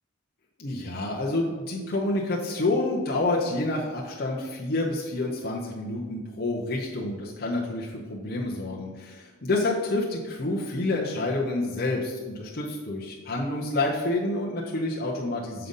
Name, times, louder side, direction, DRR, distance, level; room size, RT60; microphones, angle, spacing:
voice 1, 0.6-15.7, left 2 dB, 45° left, -4 dB, 0.8 m, -28 dB
6.7 x 3.9 x 5.4 m, 1.4 s
head